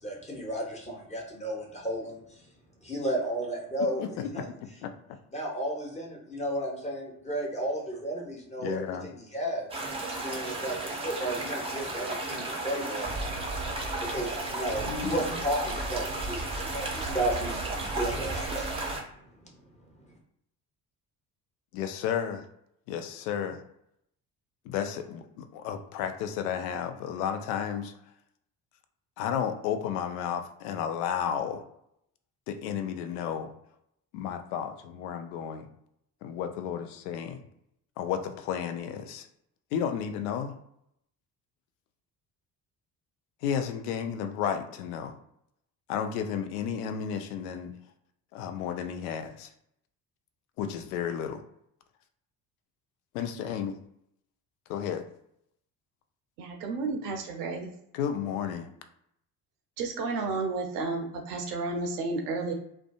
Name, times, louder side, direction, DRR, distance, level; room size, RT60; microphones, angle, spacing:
voice 1, 0.0-2.4 2.8-4.0 4.3-4.4 5.3-9.8 10.2-13.1 14.1-18.7, right 1 dB, 15° left, -2 dB, 0.9 m, -33 dB
voice 2, 3.8-4.5 4.8-4.9 8.6-9.1 14.8-15.4 21.7-22.5 22.9-23.6 24.6-27.9 29.2-31.6 32.5-33.5 34.1-35.7 36.2-37.4 38.0-39.3 39.7-40.6 43.4-45.2 45.9-47.7 48.3-49.5 50.6-51.4 53.1-53.8 54.7-55.1 57.9-58.7, left 8 dB, 65° left, 8 dB, 0.5 m, -32 dB
sound 1, 9.7-19.0, right 2 dB, 10° right, 0.6 m, -33 dB
voice 3, 56.4-57.7 59.8-62.5, right 3 dB, 65° right, 2 dB, 0.6 m, -32 dB
2.4 x 2.2 x 2.3 m, 0.75 s
figure-of-eight pair, 45°, 50 cm